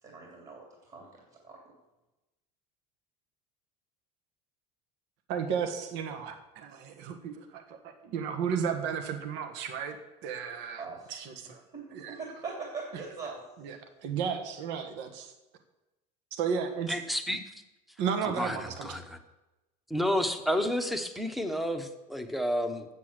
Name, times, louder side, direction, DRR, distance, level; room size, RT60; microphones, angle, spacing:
voice 1, 0.0-1.6 10.8-11.1 11.7-13.4, right 4 dB, 35° right, -1 dB, 2.9 m, -41 dB
voice 2, 5.3-10.0 10.2-11.6 11.9-12.2 13.6-15.3 16.3-17.0 18.0-18.9, right 7 dB, 65° right, 7 dB, 1.4 m, -34 dB
voice 3, 16.9-17.4 18.2-19.2 19.9-22.9, equal, ahead, 8 dB, 1.0 m, -30 dB
8.3 x 7.5 x 8.0 m, 1.0 s
supercardioid pair, 120°, 20 cm